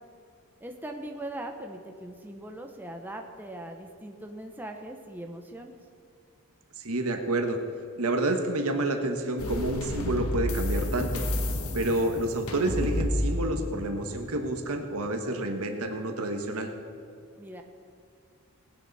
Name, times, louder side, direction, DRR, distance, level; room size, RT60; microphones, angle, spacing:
voice 1, 0.6-5.8 17.4-17.6, right 1 dB, 10° right, 3 dB, 0.8 m, -40 dB
voice 2, 6.8-7.6 8.0-11.2 11.7-16.7, right 2 dB, 75° right, 5 dB, 1.4 m, -29 dB
sound 1, 9.4-14.9, left 1 dB, 75° left, 1.3 m, -31 dB
18.5 x 10.0 x 4.1 m, 2.4 s
head